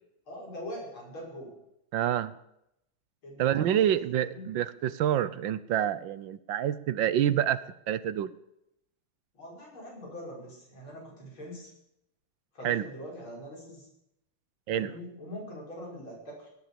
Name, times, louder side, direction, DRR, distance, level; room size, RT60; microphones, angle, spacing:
voice 1, 0.3-1.6 3.2-4.6 9.3-11.7 12.5-13.9 14.7-16.5, equal, 85° left, -2 dB, 6.4 m, -43 dB
voice 2, 1.9-2.3 3.4-7.6 7.9-8.3 12.6-12.8 14.7-14.9, right 10 dB, 70° right, 15 dB, 1.4 m, -27 dB
17.5 x 11.0 x 7.0 m, 0.81 s
omnidirectional pair, 2.2 m